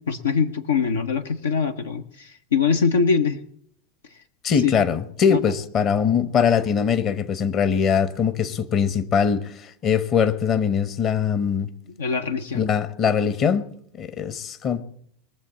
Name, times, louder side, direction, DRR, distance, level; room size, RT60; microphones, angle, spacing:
voice 1, 0.1-3.4 4.6-4.7 5.3-5.4 12.0-12.6, left 5 dB, 75° left, 0.7 m, -23 dB
voice 2, 4.4-11.7 12.5-13.6 14.0-14.8, left 7 dB, 40° left, 1.2 m, -22 dB
21.5 x 7.3 x 8.5 m
figure-of-eight pair, 85°, 0 cm